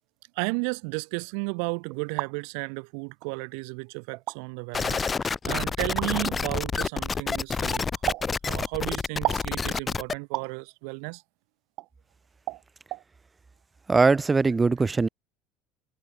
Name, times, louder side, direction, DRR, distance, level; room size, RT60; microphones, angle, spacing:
voice 1, 0.4-7.8 8.4-11.2, right 40 dB or more, 70° right, 7.0 m, -33 dB
sound 1, 1.9-2.3 3.2-3.3 4.1-4.4 6.0-6.1 8.1-8.3 9.2-9.5 10.3-10.5 11.8-11.9 12.5-12.6 12.9-13.0, right 19 dB, 50° right, 2.9 m, -30 dB
sound 2, 4.7-10.1, left 5 dB, 15° left, 0.9 m, -28 dB
voice 2, 13.9-15.1, right 4 dB, 15° right, 0.5 m, -21 dB
cardioid pair, 160°, 0 cm